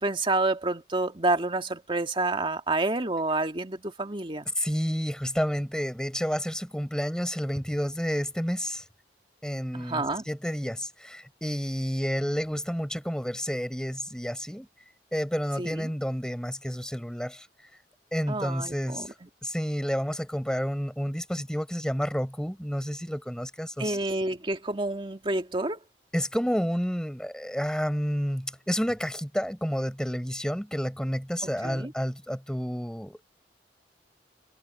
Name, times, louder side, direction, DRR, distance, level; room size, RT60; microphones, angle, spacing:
voice 1, 0.0-4.5 9.7-10.2 15.6-15.9 18.3-19.1 23.8-25.8 31.6-31.9, right 2 dB, 30° right, 2.1 m, -28 dB
voice 2, 4.6-8.8 9.4-14.7 15.1-17.5 18.1-19.1 19.4-24.0 26.1-33.2, equal, 5° left, 7.2 m, -30 dB
head